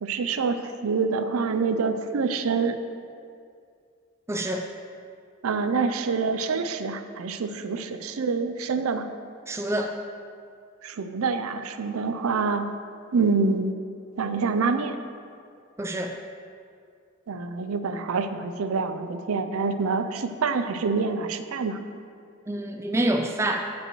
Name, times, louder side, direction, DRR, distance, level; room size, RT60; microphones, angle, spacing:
voice 1, 0.0-2.8 5.4-9.1 10.8-12.7 13.1-13.7 14.2-15.0 17.3-21.8, right 4 dB, 80° right, 9 dB, 0.5 m, -26 dB
voice 2, 4.3-4.6 9.5-9.9 15.8-16.2 22.5-23.7, right 1 dB, 10° right, 4 dB, 0.3 m, -27 dB
15.0 x 5.3 x 3.1 m, 2.3 s
head